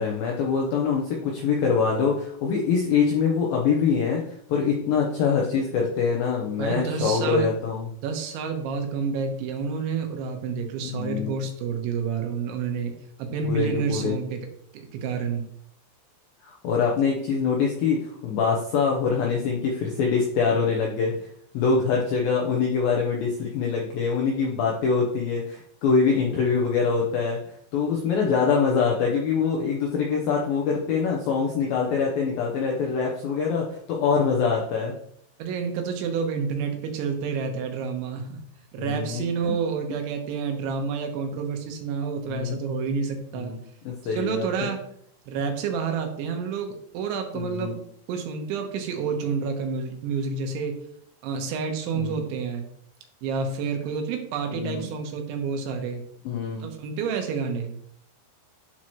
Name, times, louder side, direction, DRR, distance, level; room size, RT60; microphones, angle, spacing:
voice 1, 0.0-7.9 10.8-11.3 13.5-14.2 16.4-21.3 21.5-27.4 27.7-34.9 38.8-39.5 42.3-42.6 43.3-43.6 43.9-44.7 47.3-47.8 51.9-52.2 54.5-54.9 56.3-56.7, left 5 dB, 85° left, -1 dB, 2.1 m, -24 dB
voice 2, 6.6-7.5 8.0-12.9 13.2-14.4 14.7-15.4 35.4-38.4 38.7-43.5 44.0-44.8 45.3-47.8 48.1-50.8 51.2-52.7 53.2-56.0 56.6-57.8, right 5 dB, 80° right, 4 dB, 3.3 m, -29 dB
10.5 x 4.7 x 2.9 m, 0.68 s
omnidirectional pair, 5.3 m